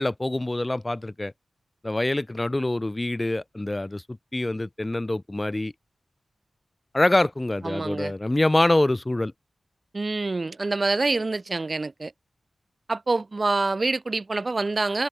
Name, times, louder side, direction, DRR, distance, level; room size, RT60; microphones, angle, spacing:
voice 1, 0.0-1.3 1.8-4.0 4.3-5.7 6.9-9.3, left 1 dB, 20° left, 0.3 m, -25 dB
voice 2, 7.6-8.1 9.9-12.1 12.9-15.1, right 3 dB, 40° right, 0.5 m, -26 dB
wide cardioid pair, 80°, 0 cm